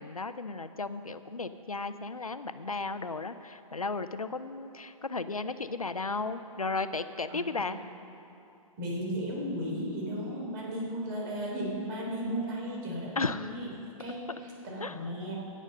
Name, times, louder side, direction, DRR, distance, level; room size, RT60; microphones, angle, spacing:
voice 1, 0.0-7.8 13.2-13.5 14.8-15.0, left 3 dB, 90° left, 12 dB, 0.6 m, -34 dB
voice 2, 7.3-7.7 8.8-13.7 14.0-15.4, equal, 40° right, -3 dB, 3.4 m, -35 dB
17.0 x 6.4 x 6.5 m, 2.7 s
figure-of-eight pair, 115°, 18 cm